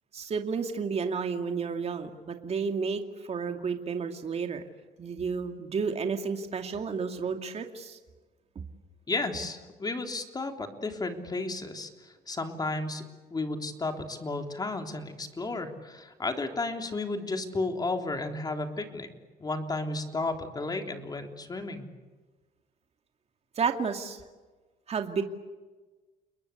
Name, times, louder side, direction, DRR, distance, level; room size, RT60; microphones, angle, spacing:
voice 1, 0.1-4.6 5.0-8.0 23.6-24.2 24.9-25.2, right 5 dB, 40° right, 5 dB, 2.4 m, -31 dB
voice 2, 9.1-13.0 13.3-19.1 19.4-21.9, left 3 dB, 25° left, 5 dB, 3.6 m, -33 dB
30.0 x 21.5 x 8.4 m, 1.3 s
cardioid pair, 110°, 17 cm